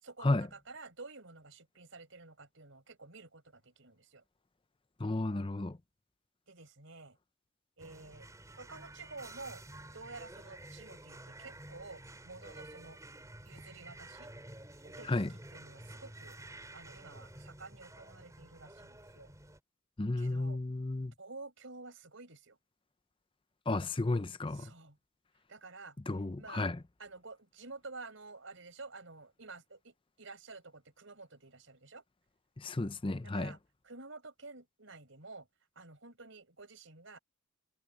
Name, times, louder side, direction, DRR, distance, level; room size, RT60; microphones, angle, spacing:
voice 1, 0.0-4.2 6.5-7.2 7.8-9.6 9.9-13.0 13.5-14.3 14.8-15.2 15.5-16.4 16.7-19.3 20.2-20.6 21.2-22.6 24.5-25.0 25.5-26.0 26.4-26.7 27.0-32.0 33.2-33.6 33.8-35.5 35.8-37.2, right 3 dB, 65° right, 5.3 m, -50 dB
voice 2, 5.0-5.8 15.0-15.3 20.0-21.1 23.7-24.7 26.1-26.8 32.6-33.6, left 2 dB, 25° left, 0.6 m, -33 dB
sound 1, 7.8-19.6, right 1 dB, 15° right, 3.8 m, -51 dB
head